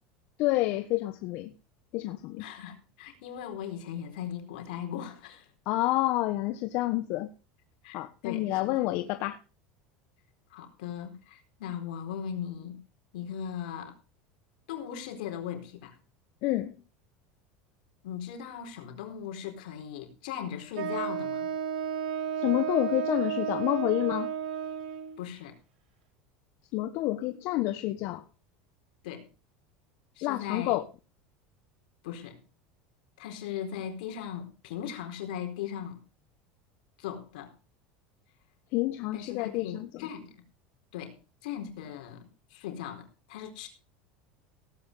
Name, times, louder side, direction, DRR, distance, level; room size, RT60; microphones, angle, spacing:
voice 1, 0.4-1.5 1.9-2.4 5.7-7.3 7.9-9.4 16.4-16.7 22.4-24.3 26.7-28.2 30.2-30.8 38.7-40.1, left 17 dB, 60° left, 1.2 m, -29 dB
voice 2, 2.4-5.5 7.8-8.9 10.5-12.8 13.1-14.0 14.7-16.0 18.0-21.5 25.2-25.6 29.0-29.3 30.2-30.8 32.0-32.4 33.2-36.0 37.0-37.5 39.1-40.3 40.9-41.2 41.4-43.7, left 9 dB, 80° left, 4.4 m, -38 dB
Wind instrument woodwind instrument, 20.7-25.2, right 8 dB, 90° right, 5.6 m, -32 dB
17.0 x 8.9 x 5.5 m
supercardioid pair, 125°, 5 cm